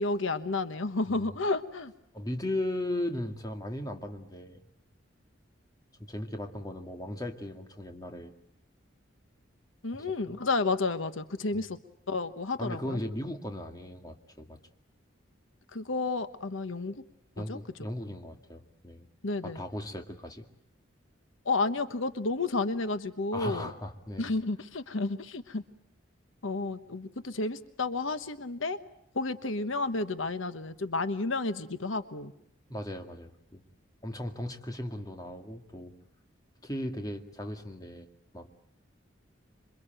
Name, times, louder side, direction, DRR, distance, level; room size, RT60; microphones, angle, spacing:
voice 1, 0.0-1.9 9.8-11.8 12.1-13.0 15.7-17.0 17.4-17.6 19.2-19.6 21.4-23.7 24.2-25.6 26.4-28.8 29.1-32.3, left 3 dB, 80° left, 11 dB, 1.2 m, -31 dB
voice 2, 2.1-4.6 6.0-8.3 10.3-10.4 11.5-11.6 12.6-14.6 17.4-19.1 19.4-20.5 23.3-24.3 32.7-33.6 34.0-35.9 36.6-38.1 38.3-38.5, left 1 dB, 20° left, 4 dB, 2.1 m, -37 dB
27.0 x 24.0 x 9.1 m, 0.74 s
head